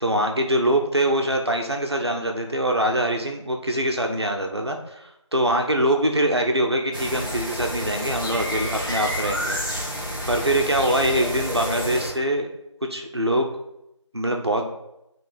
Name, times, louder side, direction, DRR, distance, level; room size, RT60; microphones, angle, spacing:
voice 1, 0.0-9.6 10.3-12.5 12.9-13.5 14.1-14.7, right 1 dB, 55° right, 3 dB, 0.8 m, -23 dB
sound 1, 6.9-12.1, equal, 45° left, 1.5 m, -29 dB
8.6 x 3.3 x 3.5 m, 0.86 s
figure-of-eight pair, 180°, 16 cm